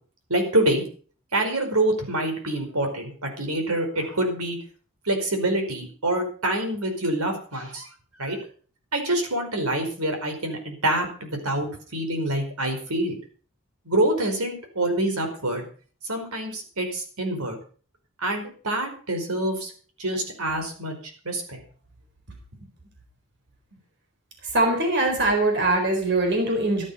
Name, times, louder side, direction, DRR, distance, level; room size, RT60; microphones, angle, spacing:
voice 1, 0.3-0.8 1.3-4.6 5.0-7.9 8.2-8.4 8.9-13.2 13.8-15.7 16.1-17.6 18.2-19.7 20.0-20.9 21.2-21.6, right 1 dB, 90° right, 5 dB, 5.0 m, -26 dB
voice 2, 24.4-26.8, right 2 dB, 55° right, 2 dB, 4.2 m, -22 dB
15.0 x 11.5 x 5.5 m, 0.42 s
head